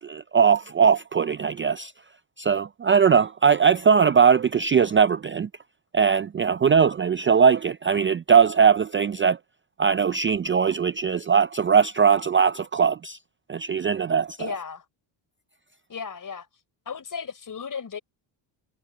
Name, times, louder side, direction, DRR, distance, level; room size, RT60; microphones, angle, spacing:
voice 1, 0.0-1.9 2.4-5.5 5.9-9.4 9.8-13.2 13.5-14.5, right 6 dB, 25° right, 0.4 m, -20 dB
voice 2, 14.4-14.8 15.9-16.5 16.9-18.0, left 6 dB, 40° left, 5.5 m, -34 dB
cardioid pair, 100°, 48 cm